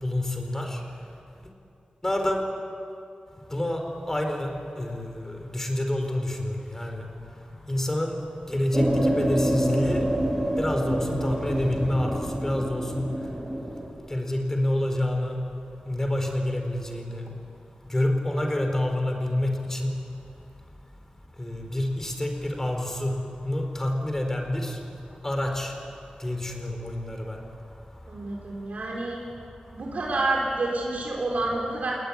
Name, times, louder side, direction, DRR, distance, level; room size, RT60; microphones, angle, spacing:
voice 1, 0.0-0.8 2.0-2.4 3.5-4.5 4.8-7.1 7.7-8.2 8.5-10.1 10.6-13.1 14.1-15.4 15.9-17.2 17.9-19.9 21.4-23.1 23.4-24.8 25.2-25.7 26.2-27.4, left 1 dB, 15° left, 3 dB, 4.4 m, -27 dB
sound 1, 8.7-13.9, right 1 dB, 20° right, 4.4 m, -27 dB
voice 2, 28.1-29.2 29.7-31.9, right 2 dB, 65° right, -3 dB, 5.1 m, -28 dB
29.0 x 20.0 x 10.0 m, 2.6 s
wide cardioid pair, 130°, 3 cm